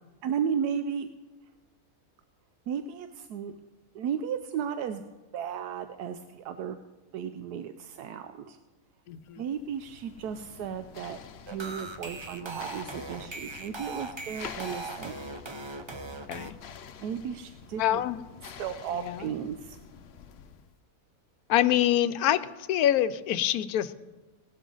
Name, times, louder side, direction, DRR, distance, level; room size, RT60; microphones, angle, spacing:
voice 1, 0.2-1.1 2.7-3.5 3.9-5.0 5.3-6.8 7.1-8.6 9.4-11.2 11.5-15.1 17.0-18.0 18.4-19.8, right 8 dB, 85° right, 8 dB, 1.2 m, -34 dB
voice 2, 9.1-9.4 16.3-16.5 17.8-18.2 18.9-19.2 21.5-22.4 22.7-23.9, left 12 dB, 75° left, 14 dB, 1.1 m, -25 dB
sound 1, 9.3-20.8, left 7 dB, 60° left, 0.7 m, -48 dB
sound 2, 11.5-16.5, right 3 dB, 30° right, 0.5 m, -39 dB
18.0 x 12.0 x 3.9 m, 1.2 s
omnidirectional pair, 1.6 m